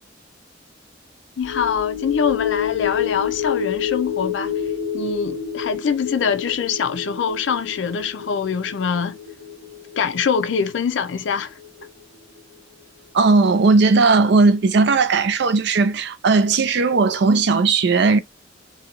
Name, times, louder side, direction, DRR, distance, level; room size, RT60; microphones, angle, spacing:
voice 1, 1.4-4.5 4.9-9.2 10.0-11.5, left 6 dB, 70° left, 0.4 m, -24 dB
sound 1, 1.4-12.0 12.4-12.5, left 9 dB, 90° right, 0.9 m, -29 dB
voice 2, 13.1-18.2, right 4 dB, 60° right, 0.5 m, -17 dB
2.7 x 2.4 x 2.8 m
head